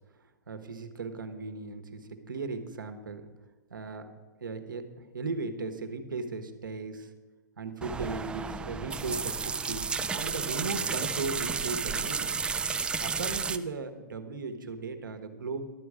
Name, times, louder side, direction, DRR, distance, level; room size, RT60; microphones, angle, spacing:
voice 1, 0.5-3.3 3.7-4.1 4.4-7.1 7.6-12.4 13.0-15.7, right 4 dB, 85° right, 7 dB, 1.3 m, -37 dB
sound 1, 7.8-13.6, right 5 dB, 10° right, 0.4 m, -32 dB
12.0 x 8.1 x 4.9 m, 1.3 s
hypercardioid pair, 125°, 11 cm